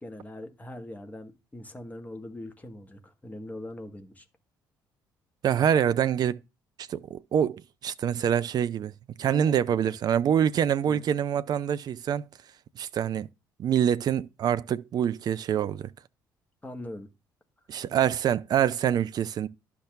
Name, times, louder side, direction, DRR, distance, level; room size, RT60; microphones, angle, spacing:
voice 1, 0.0-4.2 9.3-9.9 10.8-11.0 16.6-17.1, left 1 dB, 15° left, 1.3 m, -41 dB
voice 2, 5.4-6.4 6.8-8.9 9.2-12.2 12.8-13.3 13.6-15.9 17.7-19.5, right 9 dB, 40° right, 0.4 m, -25 dB
11.5 x 5.9 x 2.4 m
figure-of-eight pair, 50°, 11 cm